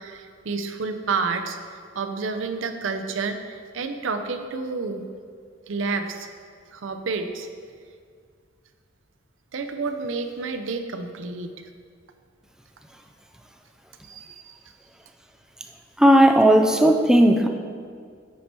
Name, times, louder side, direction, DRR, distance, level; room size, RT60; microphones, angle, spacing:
voice 1, 0.0-1.6 1.9-5.0 5.7-6.3 6.7-7.5 9.5-11.5 14.0-14.5, right 4 dB, 75° right, 7 dB, 0.5 m, -29 dB
voice 2, 16.0-17.5, right 1 dB, 5° right, 4 dB, 0.4 m, -15 dB
8.4 x 4.4 x 4.4 m, 2.1 s
head